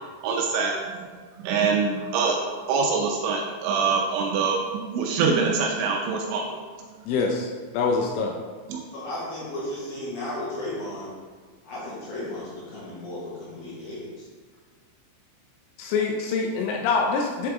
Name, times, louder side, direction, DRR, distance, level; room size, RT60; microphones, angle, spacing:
voice 1, 0.2-1.1 1.4-2.4 2.7-4.6 4.9-6.5 8.7-8.8, right 5 dB, 85° right, 1 dB, 2.8 m, -24 dB
voice 2, 7.1-7.5 7.7-8.3 15.8-17.5, left 4 dB, 85° left, 1 dB, 2.9 m, -25 dB
voice 3, 8.9-11.1 11.6-14.2, left 1 dB, 65° left, -8 dB, 2.7 m, -34 dB
7.5 x 4.7 x 3.5 m, 1.5 s
omnidirectional pair, 5.9 m